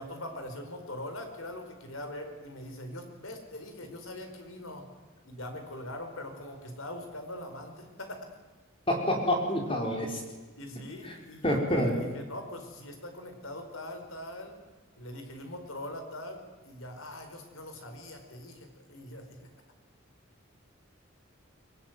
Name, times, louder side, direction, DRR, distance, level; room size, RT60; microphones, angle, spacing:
voice 1, 0.0-4.8 5.2-8.3 10.5-14.6 15.0-19.5, left 1 dB, 90° left, 6 dB, 4.8 m, -42 dB
voice 2, 8.9-10.2 11.0-11.1 11.4-11.9, equal, 25° left, 2 dB, 4.5 m, -27 dB
23.5 x 21.0 x 9.4 m, 1.2 s
head